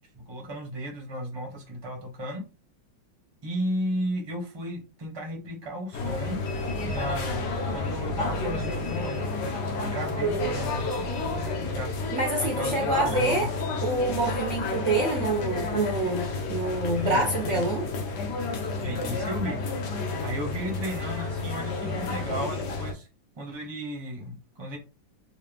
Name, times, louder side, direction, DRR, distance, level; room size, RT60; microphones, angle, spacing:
voice 1, 0.0-2.4 3.4-6.4 6.8-9.2 9.7-11.9 12.4-13.5 17.0-17.6 18.8-19.6 20.2-23.1 23.4-24.8, equal, 20° right, 0.9 m, -34 dB
sound 1, 5.9-22.9, left 3 dB, 65° left, 1.3 m, -31 dB
voice 2, 10.2-10.6 12.1-13.5 13.8-17.9, right 2 dB, 50° right, 1.0 m, -27 dB
3.7 x 2.8 x 3.4 m
omnidirectional pair, 2.1 m